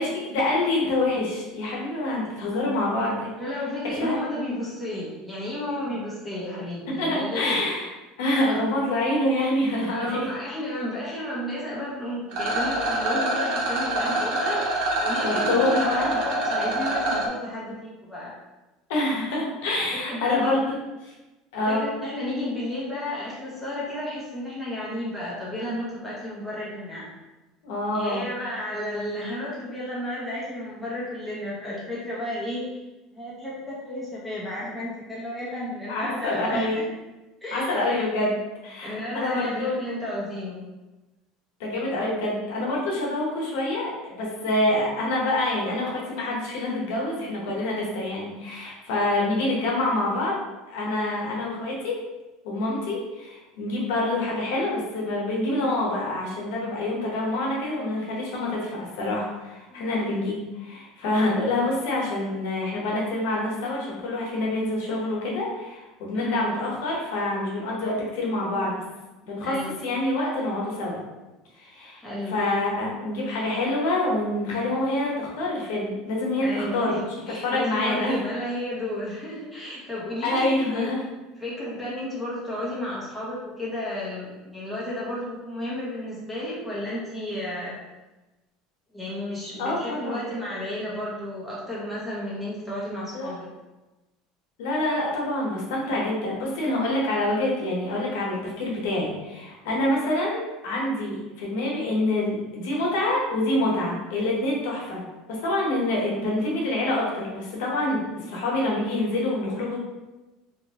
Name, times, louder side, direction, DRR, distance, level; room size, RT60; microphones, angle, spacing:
voice 1, 0.0-3.3 3.9-4.2 7.0-7.9 8.2-10.3 15.2-16.1 18.9-20.6 21.0-21.1 21.5-21.9 27.6-28.3 35.9-36.8 37.5-40.0 41.6-50.4 50.7-52.0 52.4-68.8 69.2-71.0 71.6-72.0 72.3-76.9 77.4-78.2 80.2-81.0 89.6-90.2 93.1-93.3 94.6-105.0 105.3-109.8, left 1 dB, 85° left, -3 dB, 0.9 m, -26 dB
voice 2, 3.4-7.6 9.9-18.3 20.1-20.6 21.7-27.1 27.9-32.8 33.1-36.8 37.4-37.7 38.8-40.6 59.7-59.8 66.1-66.4 69.4-69.7 72.0-72.4 76.4-80.9 81.4-87.8 88.9-93.5, left 1 dB, ahead, -9 dB, 1.0 m, -32 dB
Rattle, 12.3-17.3, right 1 dB, 65° right, 0.8 m, -25 dB
2.9 x 2.4 x 2.8 m, 1.1 s
cardioid pair, 145°, 0 cm